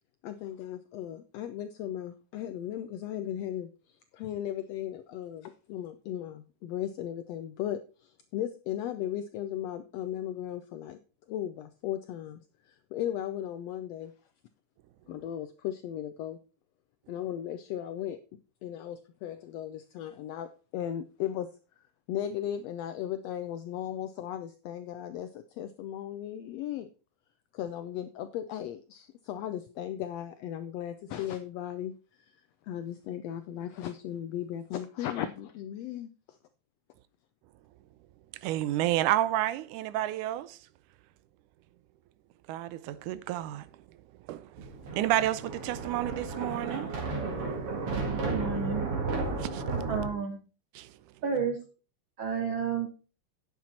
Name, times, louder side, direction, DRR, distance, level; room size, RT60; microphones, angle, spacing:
voice 1, 0.2-11.0 11.3-12.4 12.7-14.1 15.1-16.4 17.1-18.2 18.6-21.5 22.1-26.9 27.5-36.4, left 11 dB, 85° left, 1.4 m, -36 dB
voice 2, 38.4-40.6 42.5-43.7 44.3-46.9 49.4-49.7 50.8-50.9, right 14 dB, 85° right, 2.1 m, -30 dB
Thunder, 44.6-50.1, right 3 dB, 50° right, 2.7 m, -33 dB
voice 3, 48.2-48.8 49.9-50.4 51.2-51.6 52.2-52.9, right 6 dB, 70° right, 1.1 m, -31 dB
9.5 x 7.4 x 4.1 m
omnidirectional pair, 3.5 m